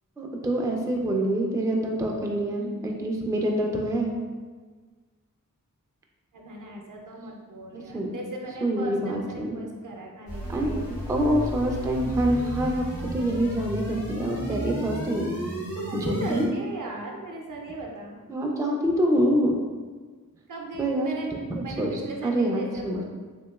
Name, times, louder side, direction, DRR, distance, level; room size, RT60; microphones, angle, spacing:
voice 1, 0.2-4.1 7.7-8.1 8.6-9.6 10.5-12.8 13.1-15.3 15.9-16.5 18.3-19.6 20.8-21.1 21.5-21.9 22.2-23.0, right 1 dB, 10° right, 0 dB, 0.3 m, -26 dB
voice 2, 6.3-10.9 12.2-12.3 15.7-18.2 20.5-21.4 21.6-23.0, right 2 dB, 65° right, 0 dB, 0.6 m, -38 dB
sound 1, 10.3-16.4, equal, 90° left, 1.0 m, -33 dB
2.9 x 2.8 x 2.3 m, 1.4 s
wide cardioid pair, 50°, 34 cm